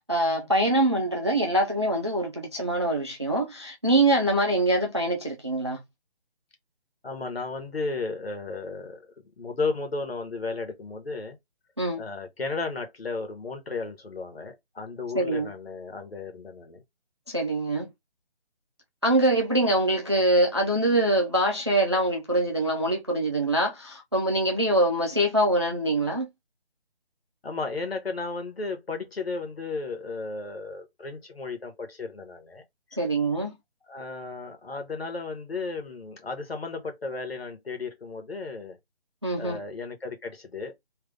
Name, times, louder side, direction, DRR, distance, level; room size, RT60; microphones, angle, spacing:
voice 1, 0.1-5.8 11.8-12.0 15.1-15.5 17.3-17.9 19.0-26.3 33.0-33.5 39.2-39.6, right 1 dB, 25° right, 0.4 m, -24 dB
voice 2, 7.0-9.1 9.4-11.4 12.0-16.8 27.4-32.6 33.9-38.8 39.4-40.7, left 3 dB, 65° left, 1.4 m, -34 dB
3.3 x 2.5 x 3.4 m
figure-of-eight pair, 150°, 32 cm